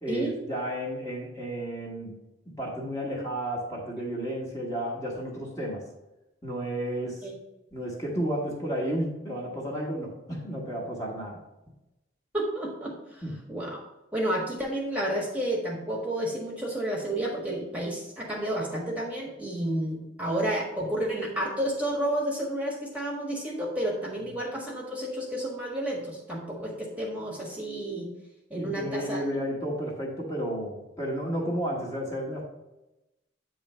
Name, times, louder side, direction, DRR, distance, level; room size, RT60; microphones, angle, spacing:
voice 1, 0.0-2.2 2.5-5.8 6.4-7.3 7.7-11.4 13.2-13.3 28.5-32.4, right 1 dB, 15° left, -4 dB, 1.3 m, -32 dB
voice 2, 12.3-13.2 13.5-13.8 14.1-28.1 28.5-29.2, right 1 dB, 5° right, -3 dB, 1.3 m, -31 dB
8.7 x 3.1 x 5.6 m, 0.97 s
head